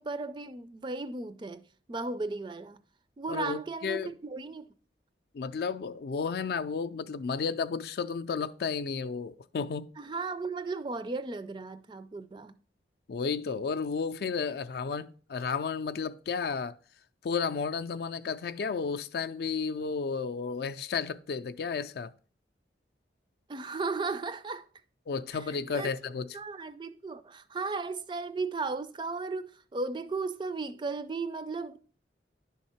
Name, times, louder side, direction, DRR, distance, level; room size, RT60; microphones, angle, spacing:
voice 1, 0.0-1.6 1.9-2.8 3.2-4.7 10.0-12.6 23.5-24.6 25.3-25.4 25.7-25.9 26.3-31.8, right 3 dB, 25° right, 0.3 m, -35 dB
voice 2, 3.3-4.1 5.3-9.9 13.1-16.8 17.2-22.1 25.1-26.3, left 5 dB, 60° left, 0.4 m, -32 dB
10.5 x 3.5 x 4.3 m
head